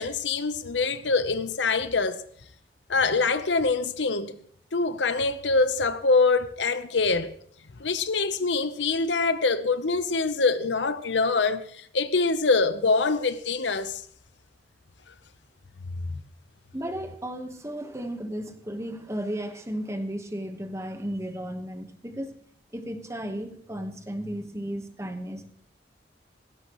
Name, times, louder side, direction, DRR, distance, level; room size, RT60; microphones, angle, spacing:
voice 1, 0.0-2.2 2.9-4.4 4.7-7.3 7.8-14.0 16.1-16.2, left 4 dB, 80° left, 0.9 m, -24 dB
voice 2, 16.7-22.4 22.7-25.5, equal, 15° right, 1.3 m, -34 dB
18.5 x 16.0 x 3.1 m
head